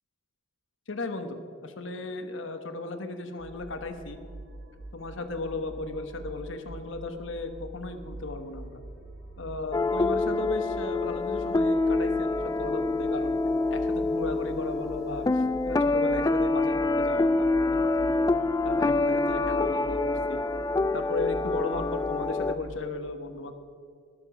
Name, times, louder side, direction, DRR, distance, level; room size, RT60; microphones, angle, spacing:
voice 1, 0.9-4.2 4.9-8.8 9.4-13.4 13.7-18.3 18.6-20.4 20.9-23.5, left 3 dB, 75° left, 7 dB, 1.1 m, -36 dB
sound 1, 3.4-22.9, right 2 dB, 60° right, 1.8 m, -44 dB
sound 2, 9.7-22.5, left 2 dB, 20° left, 0.3 m, -26 dB
19.0 x 6.9 x 6.0 m, 2.2 s
head